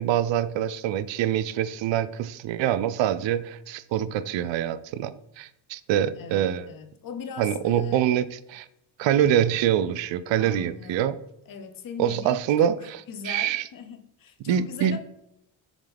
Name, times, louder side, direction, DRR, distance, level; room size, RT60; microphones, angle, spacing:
voice 1, 0.0-6.7 7.4-8.7 9.0-11.1 12.0-12.7 13.2-13.6 14.5-15.0, right 10 dB, 65° right, 0.6 m, -25 dB
voice 2, 6.1-8.1 10.4-11.1 11.5-15.0, left 6 dB, 45° left, 0.9 m, -39 dB
7.2 x 3.7 x 3.4 m
cardioid pair, 85°, 47 cm